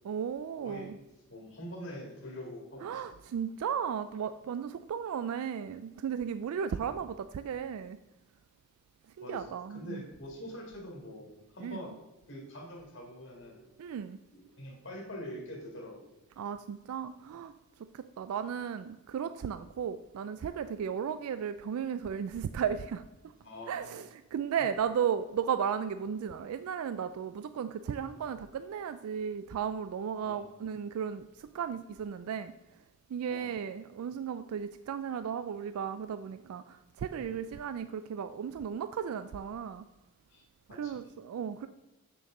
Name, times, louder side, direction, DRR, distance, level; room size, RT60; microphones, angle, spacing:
voice 1, 0.0-1.0 2.8-8.0 9.2-10.0 11.6-11.8 13.8-14.2 16.4-17.5 17.9-23.0 23.7-32.5 33.1-39.9 40.7-41.7, right 7 dB, 85° right, 12 dB, 0.3 m, -35 dB
voice 2, 0.6-0.9 1.3-3.2 9.2-12.0 12.3-13.7 14.3-16.1 23.4-24.0 30.2-30.5 33.3-33.5 40.3-41.0, left 1 dB, 55° left, 0 dB, 1.9 m, -45 dB
7.2 x 6.8 x 3.7 m, 1.0 s
head